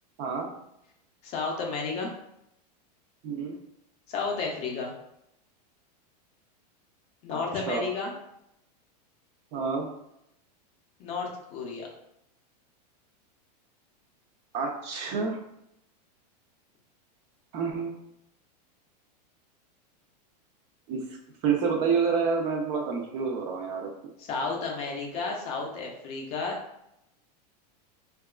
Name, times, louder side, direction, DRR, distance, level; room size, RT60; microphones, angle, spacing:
voice 1, 0.2-0.5 3.2-3.6 7.3-7.4 7.7-7.8 9.5-9.9 14.5-15.4 17.5-17.9 20.9-21.0 21.4-23.9, right 5 dB, 40° right, 1 dB, 0.4 m, -28 dB
voice 2, 1.2-2.1 4.1-4.9 7.2-8.1 11.0-11.9 24.2-26.6, left 4 dB, 30° left, 0 dB, 0.5 m, -32 dB
2.8 x 2.3 x 2.3 m, 0.81 s
supercardioid pair, 150°, 21 cm